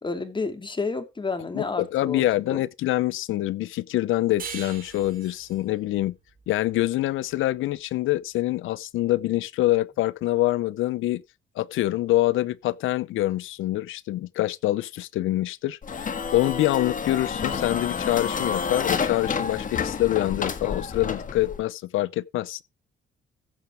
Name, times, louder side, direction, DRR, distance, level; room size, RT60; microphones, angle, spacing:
voice 1, 0.0-2.3 2.5-2.6, left 4 dB, 25° left, 2.6 m, -30 dB
voice 2, 1.5-6.2 6.5-11.2 11.6-22.6, left 16 dB, 85° left, 0.7 m, -25 dB
sound 1, 4.4-7.6, right 6 dB, 45° right, 4.0 m, -42 dB
sound 2, 15.8-21.6, left 6 dB, 40° left, 1.8 m, -29 dB
15.0 x 7.0 x 4.8 m
cardioid pair, 90°, 20 cm